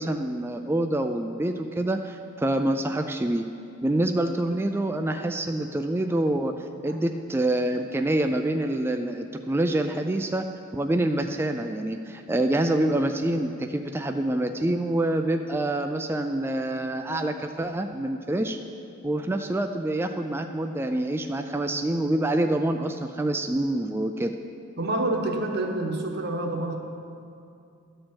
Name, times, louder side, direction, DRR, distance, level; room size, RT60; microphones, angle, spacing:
voice 1, 0.0-3.4 3.8-6.5 6.8-10.4 10.7-18.6 19.0-24.3, right 1 dB, 10° right, 5 dB, 0.3 m, -26 dB
voice 2, 24.8-26.8, right 2 dB, 55° right, 3 dB, 1.0 m, -28 dB
12.5 x 4.4 x 7.7 m, 2.6 s
head